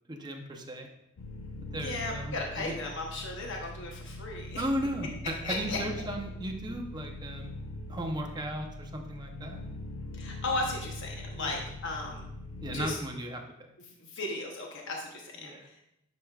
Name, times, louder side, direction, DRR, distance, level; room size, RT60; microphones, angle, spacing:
voice 1, 0.1-0.9 1.7-2.7 4.6-7.5 7.9-9.7 11.4-11.5 12.6-13.4 15.4-15.7, right 1 dB, 20° right, 3 dB, 0.7 m, -36 dB
sound 1, 1.2-12.9, left 1 dB, 80° left, 0.6 m, -42 dB
voice 2, 1.8-4.6 5.4-5.8 10.1-12.3 12.7-13.0 14.0-15.8, left 2 dB, 65° left, 0 dB, 1.0 m, -36 dB
9.4 x 4.8 x 2.4 m, 0.82 s
head